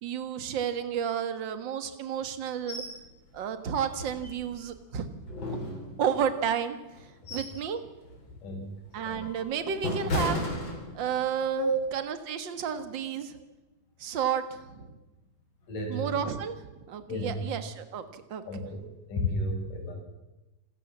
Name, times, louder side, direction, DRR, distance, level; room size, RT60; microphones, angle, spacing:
voice 1, 0.0-2.8 3.3-5.2 6.0-6.8 7.3-7.8 8.9-10.5 10.9-13.3 14.0-14.9 15.9-16.6 16.9-18.4, right 8 dB, 45° right, 9 dB, 1.8 m, -31 dB
sound 1, 2.7-3.0 3.3-3.4 3.9-4.8 5.3-6.3 6.9-7.7 8.0-8.3 8.8-11.3 11.7-11.9, left 1 dB, 35° left, 5.3 m, -34 dB
voice 2, 15.7-16.2 17.1-17.4 18.5-18.8 19.1-19.9, equal, 90° left, 2 dB, 6.8 m, -31 dB
27.0 x 14.5 x 7.5 m, 1.0 s
omnidirectional pair, 3.6 m